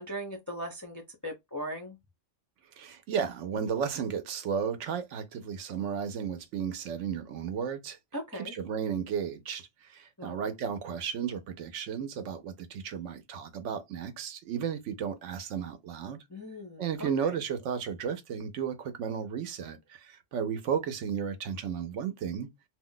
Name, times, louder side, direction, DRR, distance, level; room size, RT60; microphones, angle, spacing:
voice 1, 0.0-2.0 8.1-8.5 10.2-10.5 16.3-17.4, equal, 25° left, 0.4 m, -39 dB
voice 2, 2.8-8.0 8.4-16.2 16.8-22.5, right 7 dB, 75° right, 0.9 m, -34 dB
2.5 x 2.2 x 3.8 m
omnidirectional pair, 1.3 m